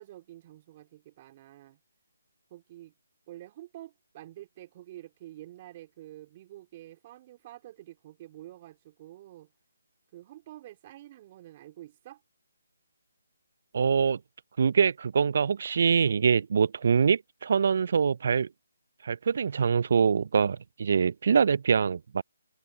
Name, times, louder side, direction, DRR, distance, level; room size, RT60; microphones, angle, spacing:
voice 1, 0.0-1.8 2.5-2.9 3.3-9.5 10.1-12.2, right 14 dB, 30° right, 3.0 m, -48 dB
voice 2, 13.7-14.2 14.6-18.5 19.0-22.2, right 6 dB, 55° right, 0.4 m, -24 dB
figure-of-eight pair, 155°, 0 cm